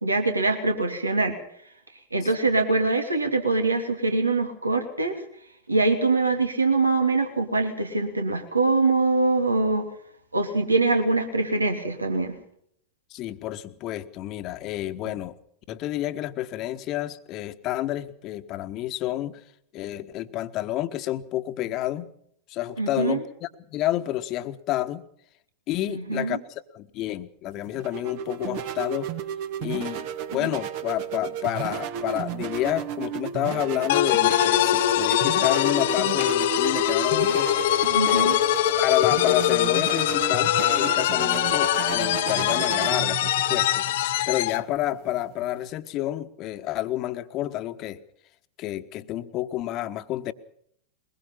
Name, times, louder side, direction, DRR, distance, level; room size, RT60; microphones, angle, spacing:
voice 1, 0.0-1.3 2.1-5.2 5.7-9.9 10.3-12.4 15.0-15.1 22.8-23.2 25.9-26.4 37.9-38.4, right 3 dB, 80° right, 5 dB, 2.8 m, -23 dB
voice 2, 13.1-15.4 15.7-19.4 19.7-22.1 22.5-25.0 25.7-29.1 29.6-37.5 38.1-38.3 38.8-43.9 44.3-48.0 48.6-50.3, left 14 dB, 40° left, 10 dB, 1.4 m, -29 dB
sound 1, 27.5-45.7, right 9 dB, 50° right, 1.7 m, -33 dB
sound 2, 33.9-44.6, left 14 dB, 55° left, 0.8 m, -23 dB
22.5 x 21.5 x 5.6 m, 0.69 s
figure-of-eight pair, 90°, 0 cm